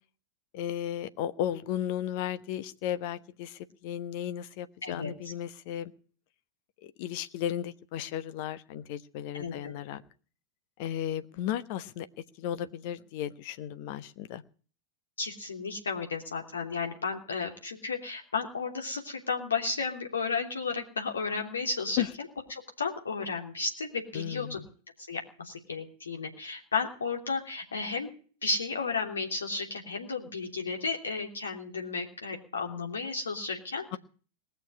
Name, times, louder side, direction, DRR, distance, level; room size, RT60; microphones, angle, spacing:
voice 1, 0.5-5.9 6.8-10.0 10.8-12.1 12.4-14.4 22.0-22.1 24.1-24.6, left 11 dB, 45° left, 13 dB, 0.9 m, -34 dB
voice 2, 9.3-10.0 15.2-24.6 25.1-28.1 28.4-34.0, left 4 dB, 70° left, 3 dB, 3.0 m, -33 dB
19.5 x 6.9 x 9.8 m, 0.42 s
figure-of-eight pair, 90°, 0 cm